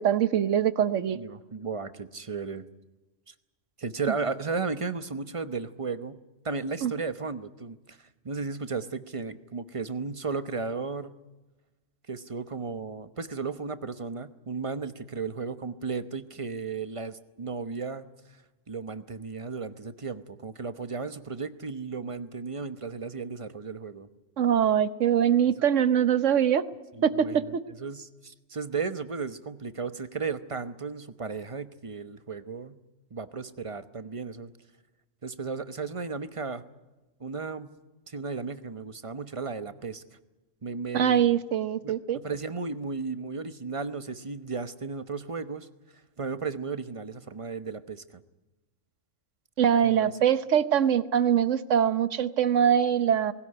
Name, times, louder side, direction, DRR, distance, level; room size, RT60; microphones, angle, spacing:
voice 1, 0.0-1.2 6.8-6.9 24.4-26.6 27.0-27.6 40.9-42.2 49.6-53.3, right 9 dB, 70° right, 14 dB, 1.3 m, -23 dB
voice 2, 1.1-2.6 3.3-3.4 3.8-8.0 8.2-11.2 12.1-18.1 18.7-24.1 26.9-32.8 33.1-34.5 35.2-36.6 37.2-37.8 38.1-40.0 40.6-41.2 41.8-45.7 46.2-48.2 49.8-50.1, right 4 dB, 30° right, 11 dB, 0.9 m, -35 dB
20.0 x 18.0 x 9.8 m, 1.1 s
omnidirectional pair, 1.3 m